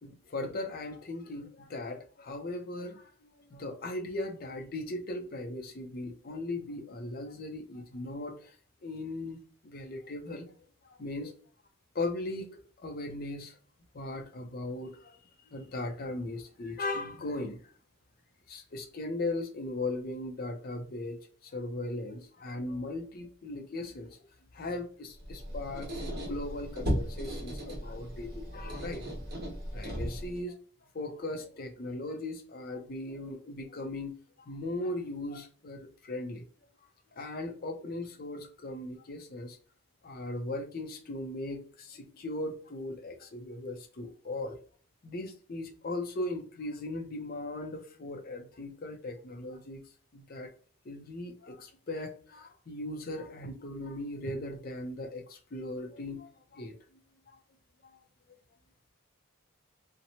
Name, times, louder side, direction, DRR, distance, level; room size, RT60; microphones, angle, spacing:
voice 1, 0.0-8.5 8.8-9.4 9.6-10.6 10.8-11.3 11.9-13.6 13.9-15.2 15.5-17.6 18.5-24.2 24.5-29.0 29.7-30.6 30.9-36.4 37.1-39.6 40.0-44.6 45.0-49.8 50.1-50.5 50.8-56.8 57.3-57.4 57.8-58.0, left 2 dB, 45° left, 4 dB, 0.5 m, -38 dB
Squeak, 25.2-30.4, equal, 45° right, 1.2 m, -36 dB
2.8 x 2.1 x 2.7 m, 0.43 s
head